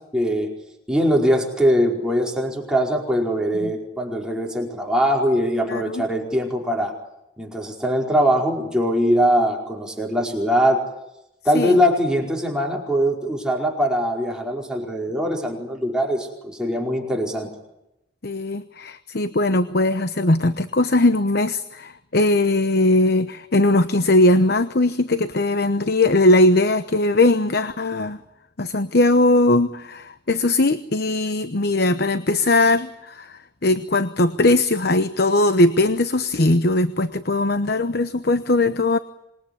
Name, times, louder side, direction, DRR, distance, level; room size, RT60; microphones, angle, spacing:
voice 1, 0.1-0.5 0.9-6.9 7.4-10.8 11.4-17.5, equal, 5° right, -1 dB, 4.9 m, -21 dB
voice 2, 5.7-6.0 11.5-11.8 18.2-28.2 28.6-39.0, left 2 dB, 60° left, 11 dB, 1.0 m, -19 dB
26.5 x 21.5 x 9.9 m, 0.88 s
head